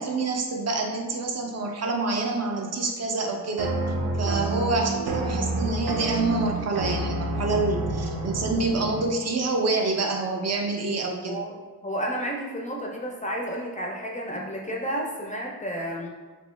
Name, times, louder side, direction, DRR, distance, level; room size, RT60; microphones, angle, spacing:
voice 1, 0.0-3.7 4.2-11.4, right 3 dB, 45° right, 2 dB, 0.4 m, -27 dB
sound 1, 3.6-9.1, right 2 dB, 90° right, 0.6 m, -28 dB
voice 2, 11.2-11.6 11.8-16.1, equal, 20° left, -1 dB, 0.3 m, -31 dB
3.0 x 2.6 x 3.1 m, 1.3 s
wide cardioid pair, 125°, 36 cm